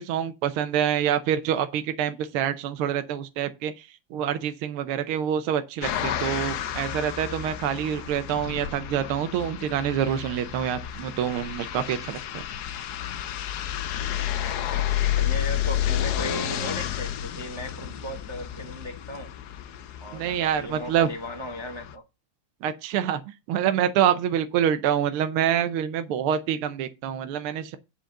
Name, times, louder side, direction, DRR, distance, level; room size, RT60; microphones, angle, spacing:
voice 1, 0.0-3.9 4.1-12.4 20.1-21.1 22.6-23.2 23.5-27.8, right 9 dB, 80° right, 1.6 m, -26 dB
sound 1, 5.8-22.0, left 11 dB, 65° left, 1.0 m, -31 dB
voice 2, 14.2-19.3 20.0-22.0, equal, 40° right, 0.4 m, -37 dB
7.7 x 5.1 x 6.5 m
omnidirectional pair, 2.4 m